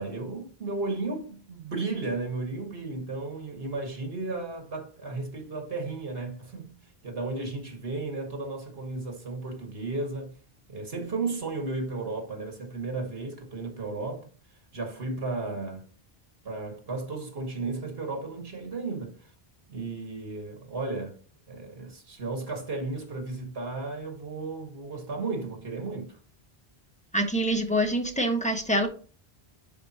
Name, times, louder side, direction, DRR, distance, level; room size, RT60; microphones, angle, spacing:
voice 1, 0.0-6.8 7.0-10.4 10.7-14.3 14.7-15.8 16.4-19.3 19.7-21.2 21.5-26.2, right 3 dB, 70° right, 2.0 m, -34 dB
voice 2, 27.1-28.9, right 1 dB, 5° left, 1.4 m, -25 dB
11.0 x 4.2 x 2.9 m
omnidirectional pair, 1.0 m